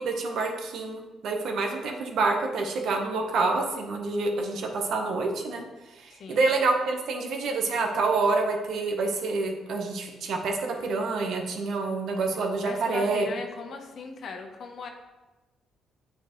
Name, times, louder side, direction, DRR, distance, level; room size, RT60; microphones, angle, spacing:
voice 1, 0.0-5.6 6.0-13.3, right 3 dB, 70° right, 2 dB, 1.0 m, -27 dB
voice 2, 12.6-14.9, left 4 dB, 60° left, 4 dB, 0.9 m, -38 dB
8.2 x 4.5 x 3.1 m, 1.1 s
cardioid pair, 90°, 0 cm